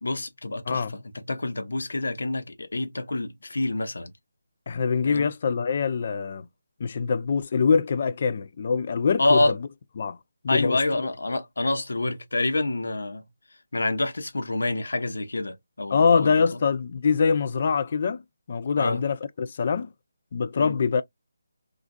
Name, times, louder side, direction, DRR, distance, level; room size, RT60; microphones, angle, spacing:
voice 1, 0.0-4.1 5.0-5.3 9.2-9.5 10.5-13.3 13.7-16.4 18.8-19.0 20.6-20.8, left 2 dB, 80° left, 0.9 m, -27 dB
voice 2, 4.7-6.5 6.8-9.5 10.0-10.2 10.4-10.8 15.9-18.2 18.5-19.9 20.3-21.0, left 5 dB, 35° left, 0.3 m, -24 dB
3.8 x 2.4 x 2.3 m
hypercardioid pair, 175°, 0 cm